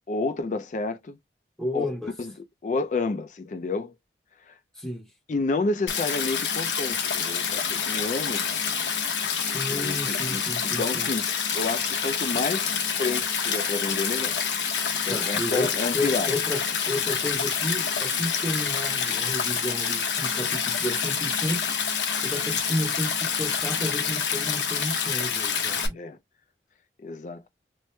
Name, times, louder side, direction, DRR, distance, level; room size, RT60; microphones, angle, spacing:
voice 1, 0.1-1.2 1.7-1.9 2.2-3.9 4.5-4.6 5.3-8.4 9.7-11.3 11.5-14.4 15.0-16.3 25.9-26.2 27.0-27.5, left 3 dB, 45° left, 0.4 m, -30 dB
voice 2, 1.6-2.1 4.8-5.1 9.5-11.1 15.1-21.6 22.2-26.0, left 1 dB, 5° left, 0.8 m, -32 dB
Stream, 5.9-25.9, left 6 dB, 85° left, 0.9 m, -27 dB
3.1 x 2.1 x 3.0 m
head